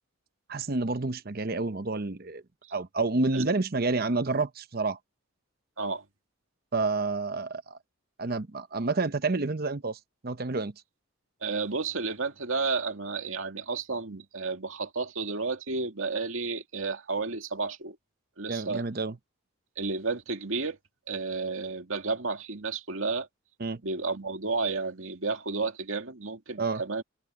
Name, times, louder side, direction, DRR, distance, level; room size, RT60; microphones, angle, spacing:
voice 1, 0.5-2.4 2.7-5.0 6.7-7.8 8.2-10.7 18.5-19.2 23.6-23.8 26.6-26.8, right 3 dB, 45° right, 0.8 m, -29 dB
voice 2, 11.4-18.0 18.4-18.8 19.8-20.8 21.1-23.3 23.8-27.0, right 4 dB, 75° right, 2.3 m, -32 dB
head